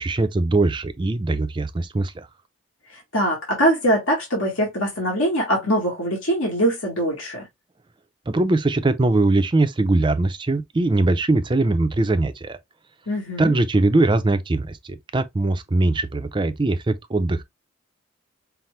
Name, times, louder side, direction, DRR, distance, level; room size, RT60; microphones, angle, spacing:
voice 1, 0.0-2.3 8.3-12.6 13.4-17.4, right 2 dB, 25° right, 0.4 m, -21 dB
voice 2, 2.9-7.4 13.1-13.5, equal, 75° left, 1.5 m, -22 dB
5.7 x 2.1 x 3.2 m
head